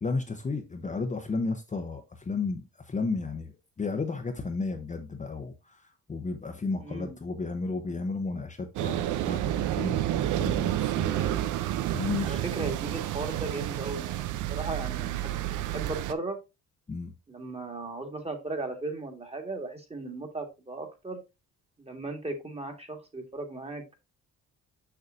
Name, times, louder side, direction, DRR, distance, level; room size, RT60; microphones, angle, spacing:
voice 1, 0.0-11.1 11.9-12.4 16.9-17.1, left 3 dB, 25° left, 0.9 m, -33 dB
voice 2, 6.8-7.2 11.1-11.5 12.2-15.3 15.7-16.4 17.3-21.2 21.8-24.0, right 2 dB, 20° right, 1.8 m, -37 dB
sound 1, 8.8-16.1, right 13 dB, 85° right, 0.6 m, -30 dB
6.7 x 5.7 x 2.6 m
cardioid pair, 90°, 30 cm